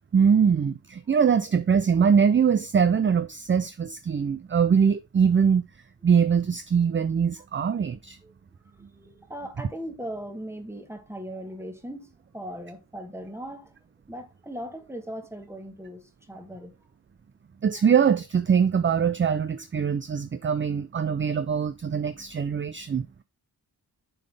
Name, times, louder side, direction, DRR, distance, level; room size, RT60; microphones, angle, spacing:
voice 1, 0.1-5.6 6.0-8.2 17.6-23.1, right 7 dB, 30° right, 0.4 m, -22 dB
voice 2, 8.7-13.7 14.1-16.7, equal, 5° right, 1.3 m, -39 dB
7.5 x 3.8 x 3.3 m
wide cardioid pair, 65°, 40 cm